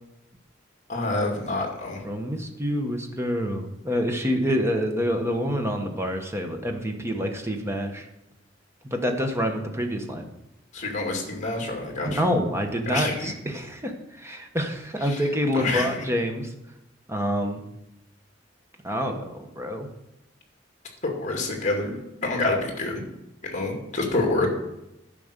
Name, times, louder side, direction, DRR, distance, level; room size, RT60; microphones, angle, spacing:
voice 1, 0.9-2.0 10.7-12.2 12.9-13.3 15.0-15.3 15.5-16.0 21.0-23.0 23.4-24.5, left 2 dB, 40° left, 1 dB, 2.3 m, -27 dB
voice 2, 2.0-8.0 8.8-10.3 12.0-13.9 14.2-16.5 17.1-17.6 18.8-19.9, equal, 15° right, 4 dB, 1.2 m, -27 dB
11.0 x 5.2 x 6.7 m, 0.90 s
head